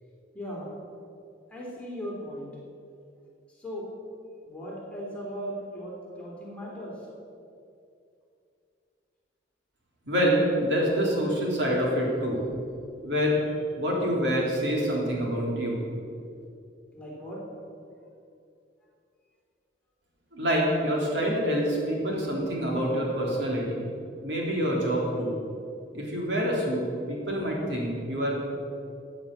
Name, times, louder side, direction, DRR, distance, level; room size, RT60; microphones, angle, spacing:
voice 1, 0.3-0.7 1.5-2.5 3.6-3.9 4.4-6.9 16.9-17.4, equal, 5° left, -5 dB, 3.4 m, -37 dB
voice 2, 10.1-12.4 13.0-13.4 13.8-15.8 20.3-23.9 24.2-25.4 25.9-26.8 27.1-28.3, equal, 70° right, -3 dB, 3.6 m, -26 dB
16.0 x 8.8 x 6.8 m, 2.5 s
head